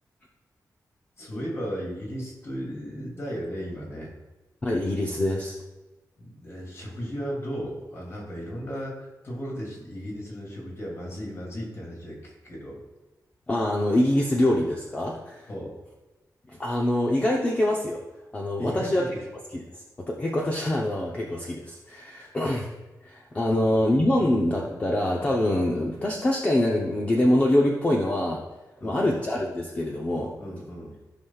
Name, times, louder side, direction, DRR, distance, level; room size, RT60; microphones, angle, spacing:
voice 1, 1.2-4.1 6.2-12.8 15.5-15.8 18.6-19.2 22.2-22.3 23.5-23.8 24.2-24.4 28.8-29.0 30.4-30.9, equal, 40° left, -2 dB, 2.6 m, -35 dB
voice 2, 4.6-5.6 13.5-15.5 16.5-18.0 18.3-19.1 19.5-22.7 23.0-28.4 28.8-30.3, left 1 dB, 25° left, -2 dB, 0.7 m, -25 dB
14.0 x 5.7 x 2.3 m, 1.1 s
wide cardioid pair, 175°, 7 cm